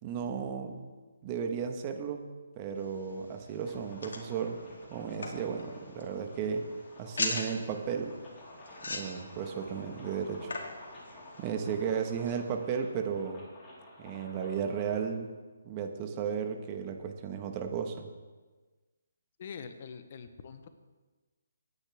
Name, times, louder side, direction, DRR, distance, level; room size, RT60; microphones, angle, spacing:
voice 1, 0.0-0.8 1.2-2.3 2.6-4.6 4.9-6.6 7.0-8.1 8.9-10.5 11.4-13.4 14.0-15.3 15.6-18.1, right 7 dB, 30° right, 5 dB, 1.4 m, -34 dB
sound 1, 2.8-12.6, left 3 dB, 75° left, 2.4 m, -42 dB
sound 2, 3.6-15.0, left 1 dB, 20° left, 4.1 m, -52 dB
voice 2, 19.4-20.7, left 6 dB, 45° left, 9 dB, 1.0 m, -44 dB
17.5 x 9.8 x 3.6 m, 1.3 s
hypercardioid pair, 150°, 0 cm